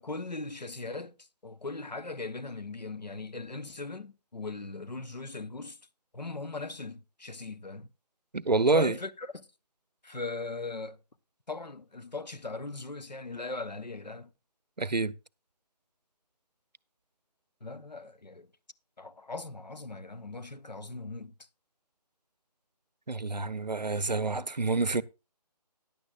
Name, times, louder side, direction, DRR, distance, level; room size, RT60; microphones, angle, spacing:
voice 1, 0.0-5.8 6.1-7.9 8.7-9.5 10.0-11.0 11.5-14.3 17.6-18.5 19.0-21.3, left 3 dB, 85° left, 0.9 m, -39 dB
voice 2, 8.3-9.0 14.8-15.1 23.1-25.0, right 3 dB, 90° right, 0.6 m, -27 dB
15.5 x 10.5 x 2.4 m
figure-of-eight pair, 150°, 21 cm